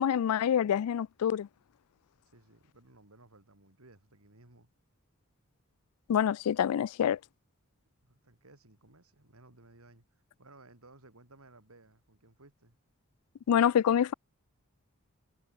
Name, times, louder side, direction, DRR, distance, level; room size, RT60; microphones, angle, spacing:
voice 1, 0.0-1.5 6.1-7.2 13.5-14.1, left 9 dB, 90° left, 0.3 m, -26 dB
voice 2, 2.3-4.7 8.0-12.8, right 2 dB, 80° right, 3.6 m, -58 dB
head